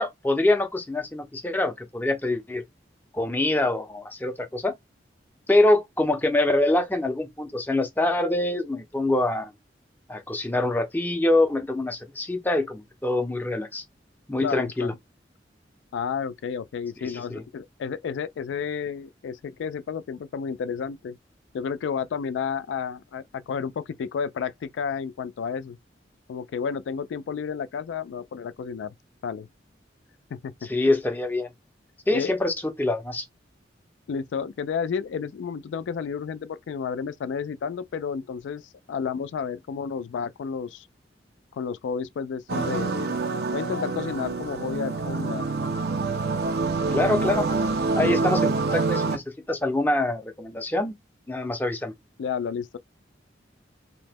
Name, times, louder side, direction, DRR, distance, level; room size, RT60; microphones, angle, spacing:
voice 1, 0.0-2.6 3.1-4.7 5.5-9.5 10.1-13.8 14.3-14.9 17.0-17.4 30.6-31.5 32.1-33.2 46.9-47.5 48.0-50.9 51.3-51.9, left 2 dB, 10° left, 0.4 m, -25 dB
voice 2, 14.4-14.9 15.9-21.2 21.5-25.8 26.3-28.9 29.2-29.5 30.3-30.7 32.1-32.3 34.1-38.6 38.9-40.9 41.5-43.2 43.5-45.5 48.0-48.3 52.2-52.8, left 6 dB, 90° left, 0.3 m, -31 dB
sound 1, 42.5-49.2, right 3 dB, 55° right, 0.5 m, -26 dB
2.7 x 2.1 x 3.4 m
head